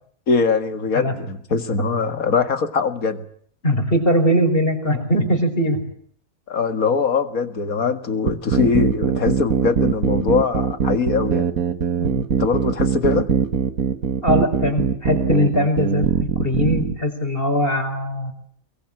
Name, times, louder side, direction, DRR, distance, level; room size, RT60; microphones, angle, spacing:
voice 1, 0.3-3.3 6.5-11.5 12.3-13.3, left 5 dB, 85° left, 2.3 m, -22 dB
voice 2, 3.6-5.8 12.0-12.3 14.2-18.3, equal, 40° left, 5.4 m, -21 dB
sound 1, 8.3-16.9, right 7 dB, 90° right, 1.8 m, -21 dB
23.0 x 23.0 x 8.8 m
omnidirectional pair, 1.5 m